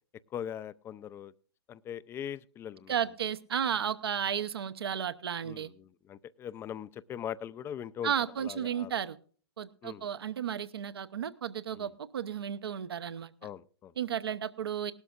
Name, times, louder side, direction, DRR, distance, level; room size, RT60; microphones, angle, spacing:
voice 1, 0.3-1.3 1.7-2.9 5.4-8.1 8.4-8.9 9.8-10.1 11.7-11.9 13.4-13.9, left 9 dB, 20° left, 17 dB, 0.5 m, -41 dB
voice 2, 2.9-5.7 8.0-9.2 9.6-13.3 14.0-14.9, right 8 dB, 65° right, 13 dB, 1.0 m, -33 dB
19.0 x 12.5 x 2.4 m, 0.42 s
figure-of-eight pair, 110°, 14 cm